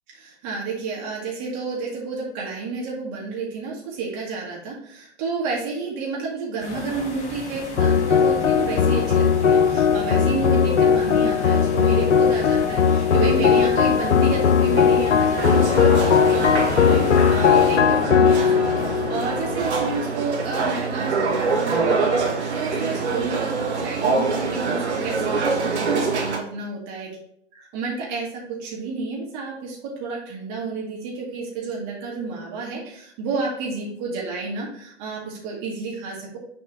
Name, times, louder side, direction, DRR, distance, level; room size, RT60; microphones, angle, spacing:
voice 1, 0.1-27.1 27.5-28.3 28.6-36.4, right 4 dB, 40° right, -4 dB, 2.2 m, -31 dB
sound 1, 6.6-17.8, left 1 dB, 20° left, 1.7 m, -36 dB
sound 2, 7.8-20.3, left 7 dB, 90° left, 0.5 m, -18 dB
sound 3, 15.4-26.4, right 4 dB, 70° right, 2.0 m, -25 dB
7.1 x 4.1 x 3.7 m, 0.73 s
figure-of-eight pair, 110°, 35 cm